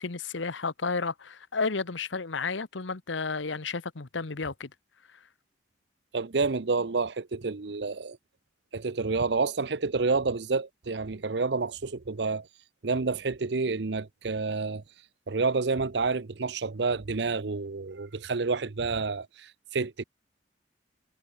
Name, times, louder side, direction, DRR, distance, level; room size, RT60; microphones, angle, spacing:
voice 1, 0.0-4.7, left 4 dB, 90° left, 1.1 m, -32 dB
voice 2, 6.1-8.2 8.7-12.5 12.8-14.8 15.3-20.0, right 4 dB, 65° right, 0.7 m, -29 dB
head